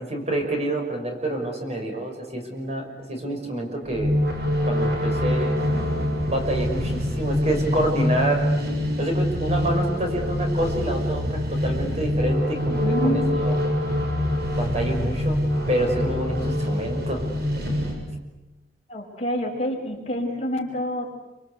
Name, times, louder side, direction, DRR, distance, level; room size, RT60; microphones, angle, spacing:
voice 1, 0.0-4.1 4.6-5.6 6.3-8.4 9.0-13.5 14.6-15.4 15.7-17.2, right 1 dB, 40° right, 3 dB, 6.1 m, -27 dB
sound 1, 3.9-17.9, left 1 dB, 65° right, 7.4 m, -25 dB
voice 2, 12.8-13.3 18.9-21.1, equal, 40° left, 0 dB, 5.5 m, -27 dB
27.5 x 26.0 x 8.3 m, 1.0 s
head